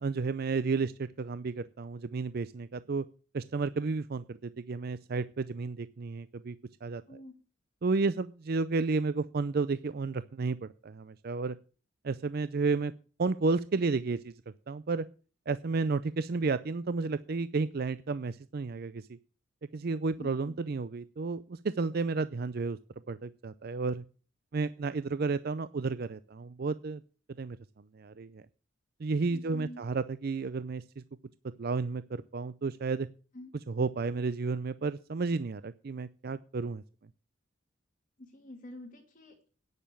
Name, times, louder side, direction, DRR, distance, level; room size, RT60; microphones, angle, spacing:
voice 1, 0.0-3.0 3.3-6.6 6.8-7.0 7.8-11.6 12.0-12.9 13.2-14.3 14.7-15.0 15.5-19.1 19.7-22.8 23.1-24.0 24.5-27.0 27.4-27.6 27.9-28.4 29.0-31.0 31.6-33.1 33.7-36.8, right 4 dB, 50° right, 14 dB, 0.5 m, -32 dB
voice 2, 7.1-7.4 20.2-20.5 29.3-29.8 33.3-33.5 38.2-39.5, left 1 dB, 45° left, -1 dB, 2.3 m, -47 dB
10.0 x 6.7 x 8.9 m, 0.38 s
head